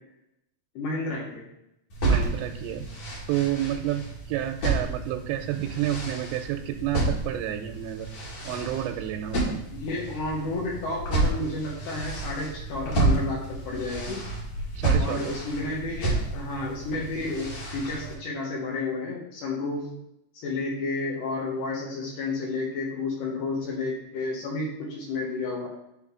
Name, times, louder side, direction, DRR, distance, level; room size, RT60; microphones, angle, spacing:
voice 1, 0.8-1.5 9.7-14.3 15.0-19.9 20.3-25.7, left 3 dB, 70° left, -3 dB, 3.0 m, -31 dB
sound 1, 1.9-18.1, right 2 dB, 50° left, 2.5 m, -30 dB
voice 2, 2.0-2.9 3.3-8.1 8.4-9.6 14.8-15.4, right 12 dB, 85° right, 4 dB, 2.6 m, -30 dB
11.5 x 3.9 x 3.7 m, 0.82 s
omnidirectional pair, 5.2 m